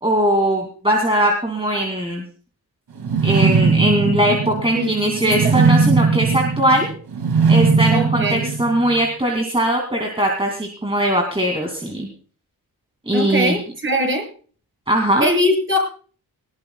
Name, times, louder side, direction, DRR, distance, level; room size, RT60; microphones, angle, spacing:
voice 1, 0.0-2.2 3.2-6.9 7.5-12.1 13.1-13.6 14.9-15.3, right 1 dB, 15° right, 1 dB, 2.4 m, -20 dB
sound 1, 3.0-9.1, right 4 dB, 80° right, 2.4 m, -19 dB
voice 2, 4.7-5.6 7.9-8.5 13.1-14.3 15.2-15.8, equal, 30° right, 1 dB, 7.6 m, -21 dB
19.5 x 19.5 x 2.3 m, 0.42 s
wide cardioid pair, 150°, 38 cm